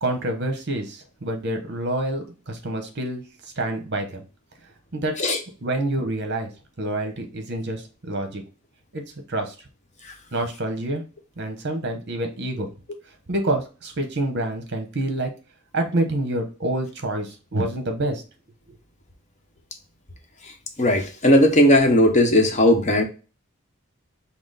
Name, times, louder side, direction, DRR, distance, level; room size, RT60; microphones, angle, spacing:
voice 1, 0.0-3.2 3.6-4.2 4.9-5.3 5.6-6.5 6.8-8.4 8.9-9.0 9.3-9.5 10.3-11.0 11.4-12.7 13.3-15.3 15.7-18.2, right 1 dB, 55° right, 5 dB, 1.1 m, -27 dB
voice 2, 20.8-23.0, left 1 dB, 35° left, 4 dB, 0.9 m, -17 dB
5.8 x 2.1 x 4.0 m, 0.33 s
head